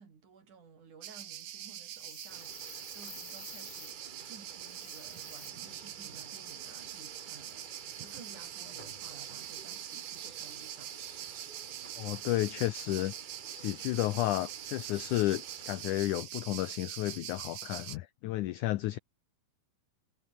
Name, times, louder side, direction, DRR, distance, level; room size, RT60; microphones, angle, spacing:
voice 1, 0.0-7.6 8.0-10.9, right 6 dB, 55° right, 5.0 m, -55 dB
sound 1, 1.0-18.0, right 11 dB, 85° right, 3.8 m, -44 dB
sound 2, 1.9-4.0 4.6-5.5, left 9 dB, 65° left, 4.3 m, -52 dB
sound 3, 2.3-16.0, right 3 dB, 20° right, 1.5 m, -54 dB
voice 2, 12.0-13.1 13.5-19.0, left 16 dB, 85° left, 1.7 m, -32 dB
omnidirectional pair, 4.4 m